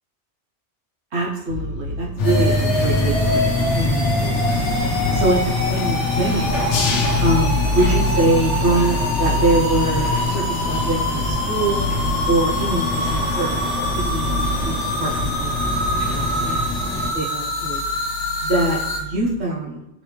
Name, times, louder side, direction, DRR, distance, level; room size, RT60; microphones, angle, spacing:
voice 1, 1.1-4.0 5.1-6.6 7.2-11.8 12.3-14.4 14.6-15.6 16.1-16.6 17.1-17.8 18.4-19.8, right 2 dB, 70° right, -3 dB, 1.0 m, -23 dB
sound 1, 1.5-19.4, left 1 dB, 55° left, 1.1 m, -30 dB
sound 2, 2.2-17.1, left 3 dB, 80° left, 0.9 m, -24 dB
sound 3, 2.2-19.0, equal, 30° left, 1.3 m, -26 dB
3.9 x 3.1 x 3.3 m, 0.89 s
omnidirectional pair, 1.2 m